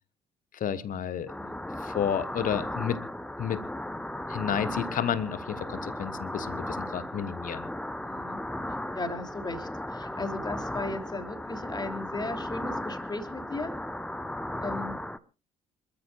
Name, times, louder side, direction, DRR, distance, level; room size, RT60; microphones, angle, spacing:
voice 1, 0.5-1.3 1.8-3.0 3.4-3.6 4.3-7.7, left 8 dB, 45° left, 14 dB, 1.3 m, -31 dB
sound 1, 1.3-15.2, left 1 dB, 5° left, 1.0 m, -36 dB
voice 2, 8.0-8.4 8.9-13.7 14.6-15.0, left 2 dB, 20° left, 7 dB, 3.1 m, -36 dB
27.0 x 13.5 x 2.5 m, 0.32 s
figure-of-eight pair, 50°, 19 cm